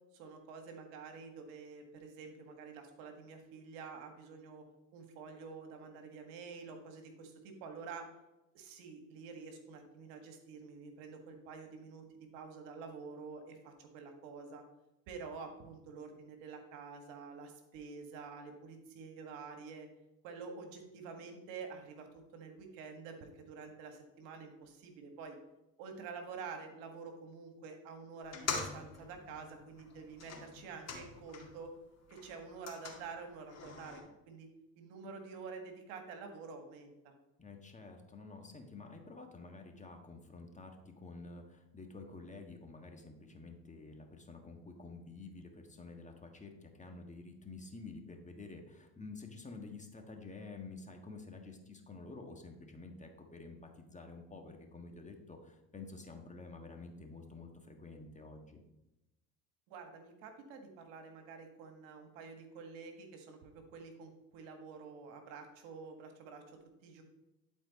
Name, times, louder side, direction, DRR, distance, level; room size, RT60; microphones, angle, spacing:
voice 1, 0.1-4.6 4.9-8.1 8.5-12.0 12.3-14.6 15.1-19.9 20.2-22.1 22.3-25.4 25.8-31.7 32.1-34.0 34.3-34.5 34.7-37.1 59.7-67.0, right 5 dB, 75° right, 5 dB, 1.6 m, -48 dB
sound 1, 28.2-31.7 32.0-34.0, left 5 dB, 40° left, 2.1 m, -44 dB
voice 2, 37.4-58.6, left 3 dB, 15° left, 3 dB, 1.5 m, -50 dB
11.5 x 4.4 x 4.1 m, 0.94 s
hypercardioid pair, 75°, 41 cm